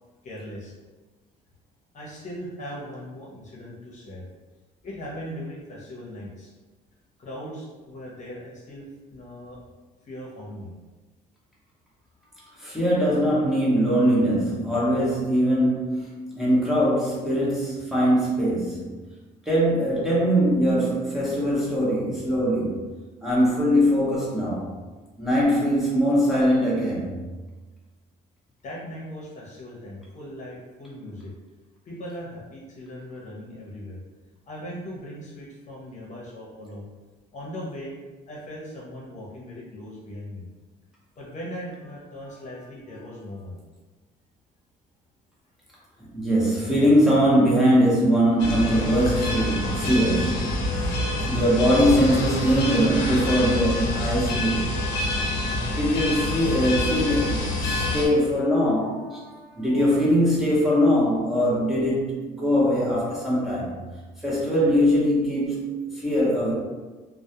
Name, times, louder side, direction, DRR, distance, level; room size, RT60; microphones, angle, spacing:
voice 1, 0.2-0.7 1.9-4.2 4.8-6.5 7.2-9.6 10.0-10.7 28.6-31.3 31.8-34.0 34.5-36.9 37.3-38.0 38.3-40.5 41.2-43.6, equal, 45° left, -4 dB, 0.7 m, -39 dB
voice 2, 12.6-19.0 19.5-22.9 23.2-24.7 25.2-27.2 46.1-50.7 51.2-54.7 55.7-63.7 64.2-66.5, equal, ahead, -8 dB, 0.8 m, -22 dB
sound 1, 48.4-58.1, left 1 dB, 85° left, 0.5 m, -27 dB
2.3 x 2.0 x 2.8 m, 1.3 s
cardioid pair, 110°, 17 cm